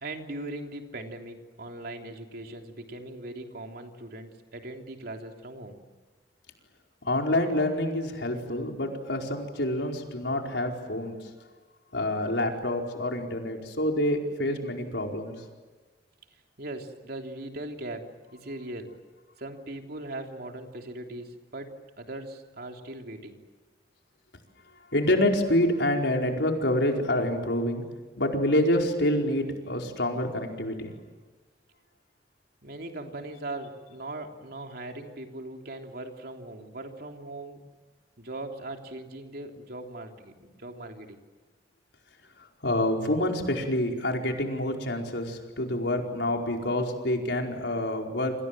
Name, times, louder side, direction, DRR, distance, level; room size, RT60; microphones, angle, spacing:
voice 1, 0.0-5.8 16.3-18.9 19.4-23.4 32.6-37.6 38.2-41.2, right 2 dB, 60° right, 3 dB, 3.4 m, -40 dB
voice 2, 7.0-11.2 11.9-15.3 24.9-27.8 28.2-30.9 42.6-48.3, left 1 dB, 85° left, 2 dB, 4.8 m, -27 dB
28.5 x 26.5 x 7.7 m, 1.3 s
head